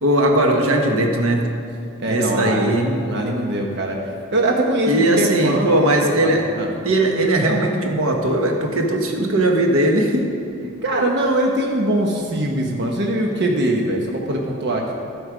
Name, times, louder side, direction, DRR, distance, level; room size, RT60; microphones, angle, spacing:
voice 1, 0.0-1.5 2.1-2.9 4.9-6.4 6.8-10.3, right 1 dB, 80° right, 2 dB, 1.3 m, -18 dB
voice 2, 2.0-4.0 4.3-6.7 10.8-14.9, right 1 dB, 55° right, 0 dB, 1.1 m, -22 dB
13.5 x 8.0 x 5.0 m, 2.5 s
head